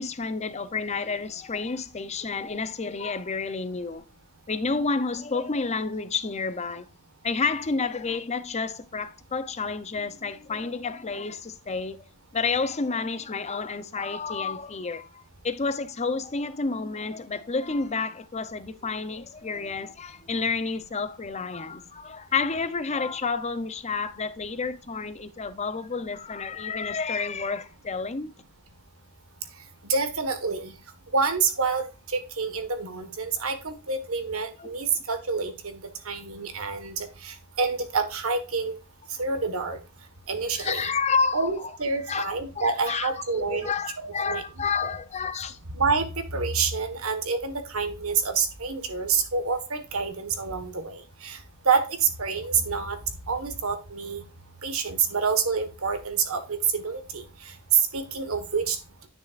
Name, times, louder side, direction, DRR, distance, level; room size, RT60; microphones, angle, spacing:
voice 1, 0.0-4.0 4.5-6.9 7.2-12.0 12.3-28.3 34.6-34.7 40.6-41.5 42.1-43.1 43.5-45.6, left 4 dB, 30° left, 0.6 m, -30 dB
voice 2, 29.9-30.7 31.1-38.7 39.1-39.8 40.3-41.0 41.3-44.4 45.7-46.1 46.3-51.4 51.6-53.0 53.3-54.2 54.6-58.8, right 5 dB, 70° right, 1.5 m, -27 dB
10.5 x 6.4 x 2.5 m
head